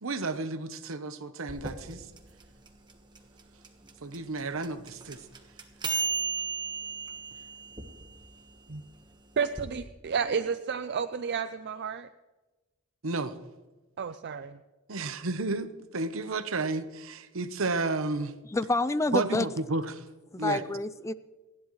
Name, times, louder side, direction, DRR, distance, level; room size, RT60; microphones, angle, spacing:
voice 1, 0.0-2.0 4.0-5.2 8.7-8.8 13.0-13.3 14.9-18.3 19.1-20.0 20.4-20.6, right 3 dB, 70° right, 11 dB, 1.0 m, -32 dB
sound 1, 1.5-9.6, right 5 dB, 20° right, 1.3 m, -36 dB
voice 2, 9.4-12.1 14.0-14.6, right 6 dB, 55° right, 10 dB, 0.5 m, -31 dB
voice 3, 18.5-19.5 20.3-21.1, left 2 dB, 15° left, 15 dB, 0.4 m, -28 dB
29.0 x 10.5 x 3.2 m, 1.2 s
head